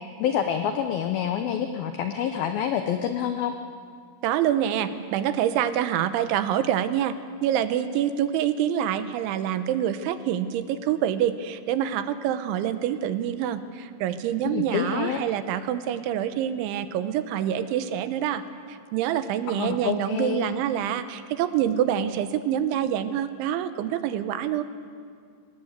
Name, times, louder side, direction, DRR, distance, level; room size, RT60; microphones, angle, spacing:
voice 1, 0.2-3.5 14.5-15.2 19.5-20.4, left 9 dB, 85° left, 7 dB, 2.1 m, -27 dB
voice 2, 4.2-18.4 18.7-24.6, right 10 dB, 80° right, 11 dB, 3.2 m, -26 dB
25.0 x 20.0 x 8.0 m, 2.1 s
omnidirectional pair, 5.6 m